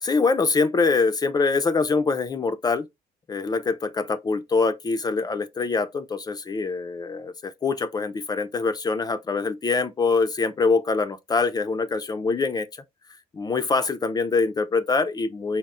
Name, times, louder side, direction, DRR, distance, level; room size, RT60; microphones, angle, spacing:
voice 1, 0.0-2.9 3.3-12.7 13.3-15.6, left 4 dB, 25° left, 0.4 m, -24 dB
4.1 x 2.0 x 3.5 m
cardioid pair, 110°, 17 cm